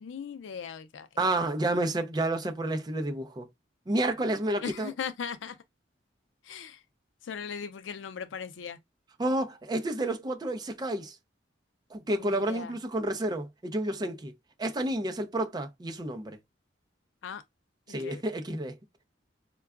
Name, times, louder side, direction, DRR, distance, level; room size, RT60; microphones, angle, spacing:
voice 1, 0.0-1.3 4.6-5.6 6.4-6.8 7.2-8.8 12.1-12.7 17.2-17.4 17.9-18.2, left 7 dB, 85° left, 0.4 m, -39 dB
voice 2, 1.2-3.5 3.9-4.9 9.2-11.2 11.9-14.3 14.6-16.4 17.9-18.8, right 1 dB, 25° right, 0.5 m, -30 dB
4.5 x 2.2 x 2.2 m
head